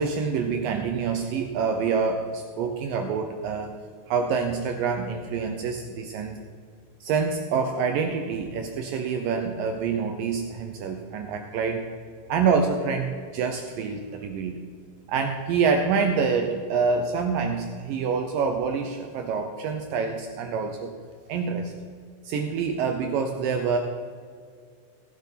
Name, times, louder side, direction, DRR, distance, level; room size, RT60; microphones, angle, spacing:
voice 1, 0.0-3.7 4.1-6.4 7.0-11.8 12.3-14.7 15.1-20.9 21.3-21.7 22.2-23.8, right 5 dB, 80° right, 5 dB, 2.0 m, -26 dB
17.0 x 7.5 x 5.7 m, 2.1 s
omnidirectional pair, 4.9 m